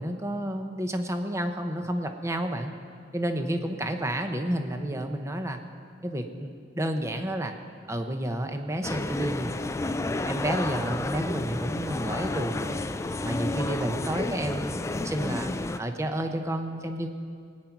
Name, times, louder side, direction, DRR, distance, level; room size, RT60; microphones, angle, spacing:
voice 1, 0.0-2.7 3.1-5.6 6.0-7.5 7.9-9.6 10.3-12.8 13.2-15.5 15.8-17.1, right 1 dB, 15° right, 6 dB, 0.9 m, -30 dB
sound 1, 8.8-15.8, left 2 dB, 15° left, 0.3 m, -31 dB
20.0 x 9.3 x 5.9 m, 2.3 s
head